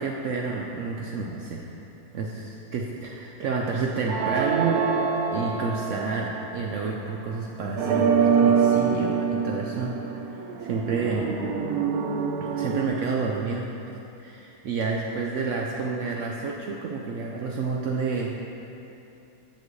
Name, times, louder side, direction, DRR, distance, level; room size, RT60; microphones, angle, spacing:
voice 1, 0.0-1.7 2.1-4.8 5.3-10.1 10.6-11.3 12.4-13.7 14.2-18.3, right 4 dB, 90° right, -1 dB, 0.6 m, -29 dB
sound 1, 4.1-6.6 7.8-12.9, right 6 dB, 70° right, 1.0 m, -25 dB
8.2 x 6.7 x 3.1 m, 2.9 s
omnidirectional pair, 1.9 m